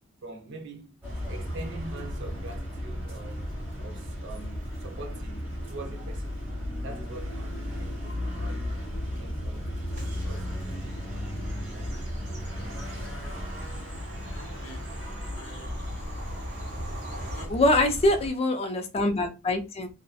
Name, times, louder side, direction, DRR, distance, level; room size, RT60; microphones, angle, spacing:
voice 1, 0.2-1.0 1.3-3.5 3.8-5.4 5.7-6.4 6.8-8.9 9.2-11.7, right 2 dB, 60° right, 0.5 m, -44 dB
sound 1, 1.0-18.3, equal, 10° right, 1.1 m, -35 dB
Bird vocalization bird call bird song / Train, 9.9-17.5, right 1 dB, 35° right, 0.9 m, -44 dB
voice 2, 14.2-14.9 15.3-16.3 17.1-18.0, left 1 dB, 80° left, 0.7 m, -50 dB
voice 3, 17.5-19.9, left 1 dB, 30° left, 0.4 m, -24 dB
2.6 x 2.0 x 2.4 m
head